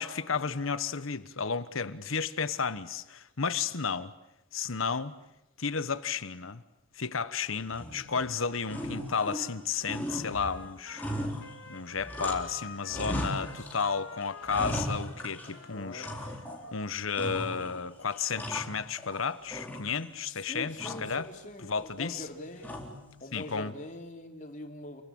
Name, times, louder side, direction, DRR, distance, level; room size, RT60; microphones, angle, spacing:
voice 1, 0.0-4.1 4.5-5.1 5.6-6.6 7.0-11.0 11.7-16.1 16.7-21.3 21.6-22.2 23.3-23.7, left 5 dB, 85° left, 1.2 m, -32 dB
sound 1, 7.7-8.3 8.6-9.6 9.9-12.6 12.9-13.9 14.2-15.6 16.0-16.7 17.1-17.8 18.1-19.2 19.5-20.2 20.8-21.2 22.6-23.1, equal, 10° left, 3.8 m, -37 dB
Trumpet, 8.5-16.8, left 4 dB, 70° left, 3.8 m, -49 dB
voice 2, 13.2-13.7 15.4-16.2 20.2-22.9 23.2-25.0, left 1 dB, 40° left, 3.4 m, -44 dB
29.5 x 23.0 x 8.7 m
head